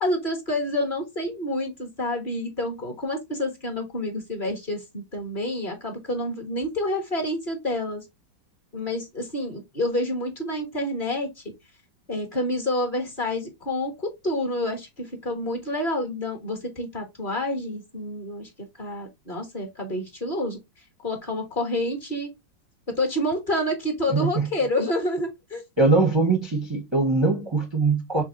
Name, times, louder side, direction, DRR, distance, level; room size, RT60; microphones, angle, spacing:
voice 1, 0.0-8.0 8.7-11.4 12.1-20.6 21.0-22.3 22.9-25.6, left 1 dB, 30° left, 1.3 m, -28 dB
voice 2, 24.1-24.5 25.8-28.2, right 3 dB, 25° right, 0.6 m, -22 dB
5.5 x 3.5 x 2.5 m
omnidirectional pair, 2.0 m